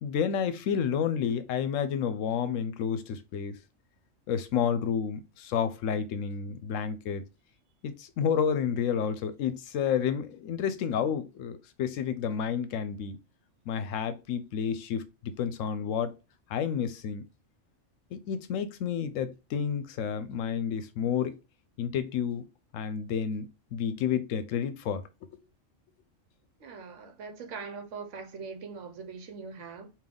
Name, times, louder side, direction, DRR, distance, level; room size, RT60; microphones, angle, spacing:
voice 1, 0.0-3.6 4.3-7.2 7.8-13.2 13.7-16.1 16.5-17.2 18.1-21.3 21.8-22.4 22.7-25.4, left 7 dB, 80° left, 0.9 m, -30 dB
voice 2, 26.6-29.9, right 5 dB, 70° right, 1.1 m, -41 dB
3.7 x 2.6 x 3.4 m
omnidirectional pair, 1.3 m